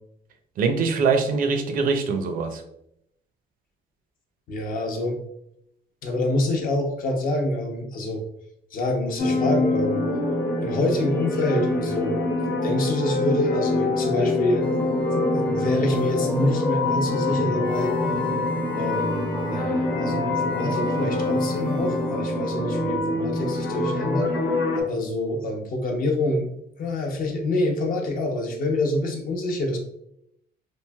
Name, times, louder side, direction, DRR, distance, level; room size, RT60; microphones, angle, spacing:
voice 1, 0.6-2.6, right 4 dB, 55° right, 6 dB, 0.5 m, -23 dB
voice 2, 4.5-5.2 6.0-8.2 8.7-10.0 10.6-14.7 15.1-17.9 18.7-19.1 19.4-24.3 24.8-26.5 26.8-29.8, left 1 dB, 55° left, 2 dB, 0.7 m, -26 dB
sound 1, 9.2-24.8, left 2 dB, 85° left, 0.9 m, -25 dB
sound 2, 14.6-23.0, right 1 dB, 5° left, 0.5 m, -32 dB
3.1 x 2.6 x 2.2 m, 0.76 s
cardioid pair, 110°, 17 cm